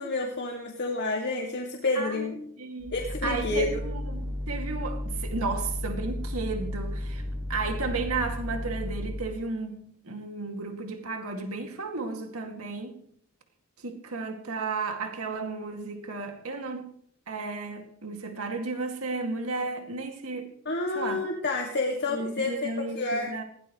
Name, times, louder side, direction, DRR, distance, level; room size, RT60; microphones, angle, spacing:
voice 1, 0.0-2.4 2.9-3.8 20.7-23.3, left 3 dB, 55° left, 2.3 m, -29 dB
voice 2, 2.0-2.9 3.2-7.2 7.5-13.0 13.8-16.9 17.3-20.5 20.9-21.2 22.1-23.4, right 3 dB, 85° right, 2.3 m, -33 dB
sound 1, 2.8-9.4, left 1 dB, 15° right, 5.2 m, -33 dB
20.0 x 17.0 x 3.2 m
head